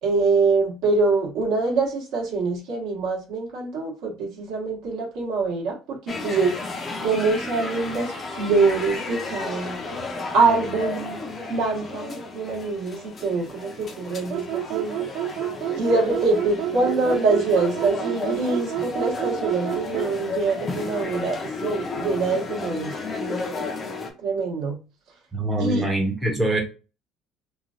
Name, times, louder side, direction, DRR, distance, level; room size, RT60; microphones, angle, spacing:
voice 1, 0.0-6.6 7.0-10.0 10.3-11.2 11.5-15.1 15.8-22.9 23.2-23.4 24.2-24.8 25.6-25.9, right 3 dB, 70° right, -2 dB, 1.4 m, -24 dB
sound 1, 6.1-24.1, left 3 dB, 25° left, 0.6 m, -33 dB
sound 2, 14.3-20.2, right 12 dB, 50° right, 0.4 m, -29 dB
voice 2, 25.3-26.6, right 1 dB, 5° right, -2 dB, 0.8 m, -24 dB
3.1 x 2.4 x 2.5 m, 0.31 s
cardioid pair, 160°, 0 cm